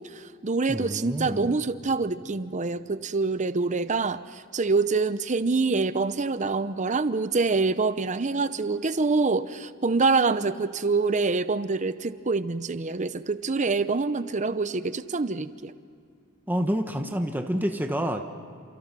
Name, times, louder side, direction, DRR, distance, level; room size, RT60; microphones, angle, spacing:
voice 1, 0.0-15.7, right 3 dB, 35° right, 13 dB, 0.7 m, -26 dB
voice 2, 0.7-1.5 16.5-18.2, equal, 10° right, 5 dB, 1.1 m, -28 dB
29.5 x 28.0 x 6.1 m, 2.3 s
head